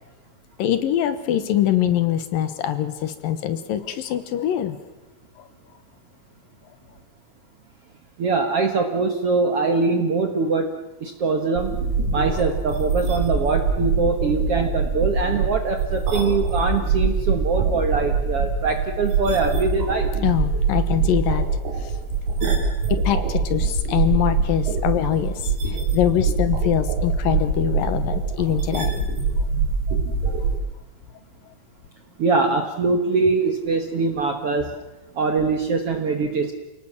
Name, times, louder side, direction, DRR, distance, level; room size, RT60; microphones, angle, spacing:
voice 1, 0.6-4.8 20.2-21.9 22.9-29.0, left 11 dB, 70° left, 11 dB, 2.7 m, -23 dB
voice 2, 8.2-11.8 12.1-20.1 32.2-34.7 35.2-36.5, right 4 dB, 55° right, 5 dB, 1.6 m, -23 dB
sound 1, 11.6-30.6, right 4 dB, 80° right, 5.3 m, -23 dB
29.0 x 18.5 x 7.3 m, 1.0 s
omnidirectional pair, 4.4 m